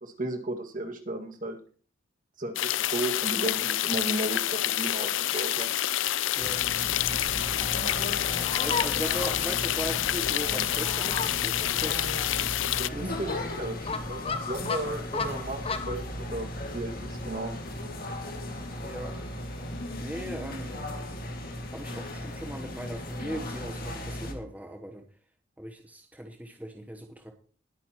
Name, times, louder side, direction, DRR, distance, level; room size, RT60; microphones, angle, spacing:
voice 1, 0.0-1.6 2.4-5.7 12.8-13.8 14.1-17.5, right 1 dB, 45° right, 4 dB, 2.0 m, -34 dB
sound 1, 2.6-12.9, left 13 dB, 80° left, 0.5 m, -28 dB
sound 2, 6.4-24.3, left 1 dB, 50° left, 2.1 m, -37 dB
Fowl, 7.0-16.0, left 4 dB, 30° left, 1.0 m, -37 dB
voice 2, 8.5-12.0 12.9-13.1 18.8-19.2 20.0-20.9 21.7-25.0 25.6-27.3, right 1 dB, 10° right, 2 dB, 1.0 m, -39 dB
20.0 x 9.2 x 3.0 m, 0.41 s
head